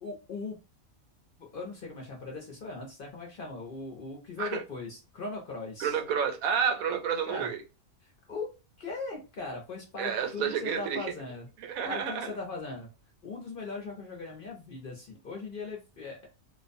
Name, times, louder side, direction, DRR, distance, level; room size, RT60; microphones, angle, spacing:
voice 1, 0.0-0.6 1.4-6.0 7.3-7.5 8.0-8.5 8.8-11.5 11.8-12.9 13.2-16.3, left 3 dB, 50° left, 0.7 m, -39 dB
voice 2, 5.8-7.6 10.0-11.1 11.6-12.3, right 7 dB, 80° right, 1.0 m, -30 dB
2.5 x 2.1 x 2.5 m
omnidirectional pair, 1.5 m